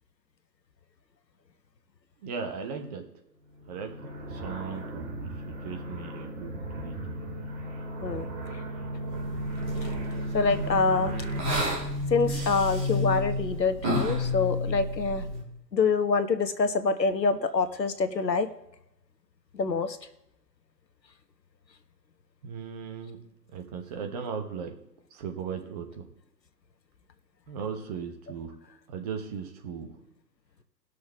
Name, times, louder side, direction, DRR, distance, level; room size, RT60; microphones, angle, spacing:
voice 1, 2.2-3.1 3.7-7.0 22.4-23.2 23.5-24.8 25.1-26.1 27.5-28.6 28.9-30.1, right 6 dB, 25° right, 4 dB, 0.9 m, -37 dB
sound 1, 3.6-11.4, right 1 dB, 55° right, 2.5 m, -36 dB
sound 2, 9.1-15.4, left 1 dB, 5° right, 0.5 m, -31 dB
voice 2, 10.3-11.2 12.1-15.2 15.7-18.5 19.5-20.0, left 4 dB, 75° left, 10 dB, 1.1 m, -26 dB
18.5 x 6.5 x 3.5 m, 0.83 s
figure-of-eight pair, 125°, 50 cm